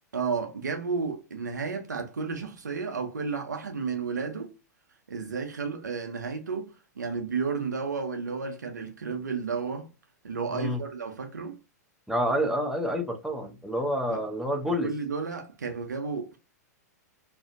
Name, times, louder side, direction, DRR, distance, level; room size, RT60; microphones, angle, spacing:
voice 1, 0.1-4.5 5.1-9.9 10.2-11.6 14.1-14.2 14.8-16.4, right 5 dB, 85° right, 0.5 m, -32 dB
voice 2, 12.1-14.9, equal, 5° right, 0.5 m, -28 dB
2.5 x 2.1 x 2.4 m
hypercardioid pair, 105°, 9 cm